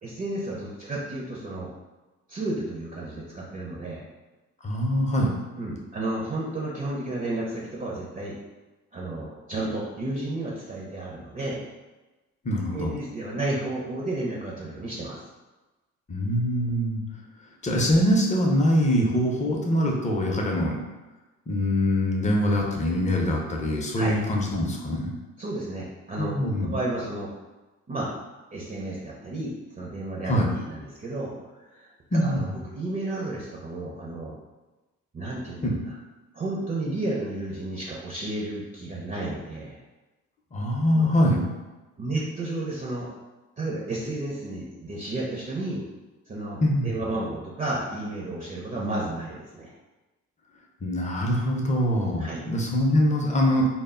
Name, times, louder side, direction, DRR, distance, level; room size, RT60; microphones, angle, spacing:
voice 1, 0.0-1.7 2.3-4.0 5.6-8.3 8.9-11.6 12.7-15.2 23.9-24.1 25.4-27.3 27.9-28.1 28.5-31.3 31.6-31.9 32.2-34.3 35.1-35.9 36.3-39.8 40.9-41.1 42.0-43.1 43.6-45.8 46.3-49.7 52.2-52.4, right 2 dB, 30° right, -4 dB, 0.5 m, -32 dB
voice 2, 4.6-5.3 12.4-13.0 16.1-17.0 17.6-20.8 21.5-25.1 26.2-26.7 30.3-30.5 32.1-32.5 35.6-35.8 40.5-41.4 46.6-46.9 50.8-53.7, equal, 25° left, -1 dB, 0.5 m, -23 dB
2.0 x 2.0 x 3.6 m, 1.1 s
cardioid pair, 90°, 30 cm